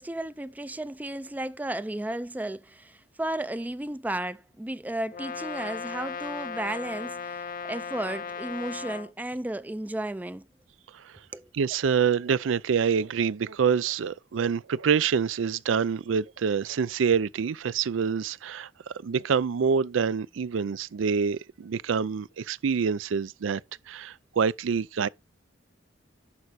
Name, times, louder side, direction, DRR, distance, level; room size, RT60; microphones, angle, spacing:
voice 1, 0.0-10.5 11.3-11.5, right 1 dB, 10° right, 0.4 m, -34 dB
Brass instrument, 5.1-9.1, left 6 dB, 45° left, 0.5 m, -36 dB
voice 2, 11.5-23.6 23.9-25.1, right 6 dB, 85° right, 0.4 m, -26 dB
11.0 x 4.7 x 4.1 m
head